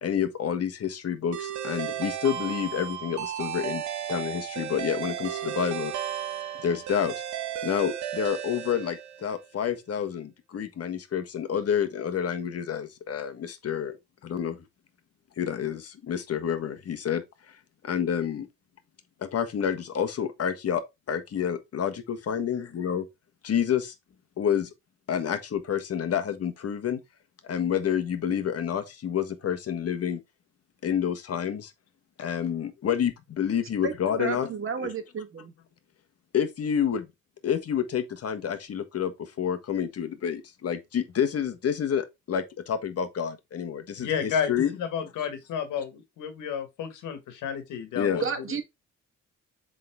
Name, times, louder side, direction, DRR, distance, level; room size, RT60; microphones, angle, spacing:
voice 1, 0.0-3.8 4.1-5.9 6.6-7.1 7.6-14.0 14.2-14.6 15.4-17.6 17.8-18.5 19.3-20.8 21.1-23.0 23.4-23.9 24.4-24.7 25.1-27.0 27.4-30.2 30.8-31.7 32.2-34.5 34.8-34.9 36.3-37.1 37.4-44.7 47.9-48.2, left 8 dB, 50° left, 1.4 m, -29 dB
sound 1, 1.3-9.5, right 10 dB, 70° right, 1.3 m, -34 dB
voice 2, 34.2-35.5 48.2-48.6, right 6 dB, 45° right, 1.5 m, -31 dB
voice 3, 44.0-48.6, left 7 dB, 85° left, 1.8 m, -32 dB
7.7 x 3.9 x 3.6 m
cardioid pair, 90°, 30 cm